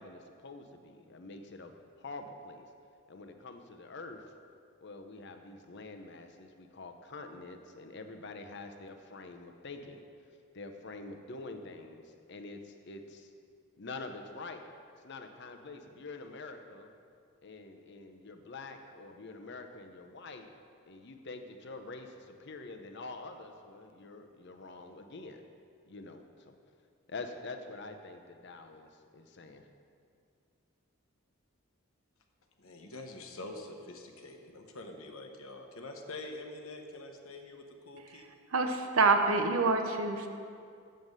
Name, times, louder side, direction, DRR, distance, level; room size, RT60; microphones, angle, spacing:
voice 1, 0.0-1.7 2.0-2.7 3.1-4.2 4.8-10.0 10.5-13.3 13.8-14.6 15.0-16.9 17.4-20.5 20.9-25.4 25.9-26.6 27.1-29.7, left 3 dB, 55° left, 6 dB, 0.7 m, -46 dB
voice 2, 32.6-38.2, left 2 dB, 75° left, 4 dB, 1.0 m, -45 dB
voice 3, 38.5-40.3, right 3 dB, 75° right, 6 dB, 0.8 m, -26 dB
7.7 x 7.3 x 6.6 m, 2.3 s
head